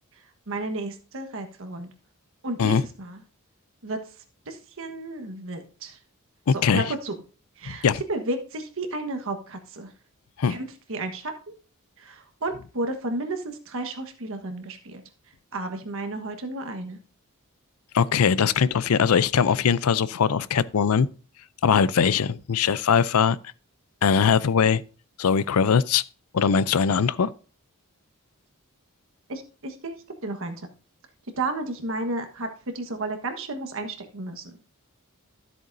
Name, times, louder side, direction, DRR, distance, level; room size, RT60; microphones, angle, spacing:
voice 1, 0.5-1.9 2.4-3.2 3.8-4.0 4.5-6.0 6.5-7.1 7.6-9.9 10.4-11.3 12.0-15.0 15.5-17.0 29.3-30.0 30.2-30.6 31.4-34.4, right 2 dB, 65° right, 1.4 m, -32 dB
voice 2, 6.5-6.9 7.6-8.0 10.4-10.6 17.9-21.1 21.6-23.4 24.0-24.8 25.2-26.0 26.3-27.3, left 6 dB, 75° left, 0.5 m, -21 dB
13.0 x 7.9 x 2.6 m
head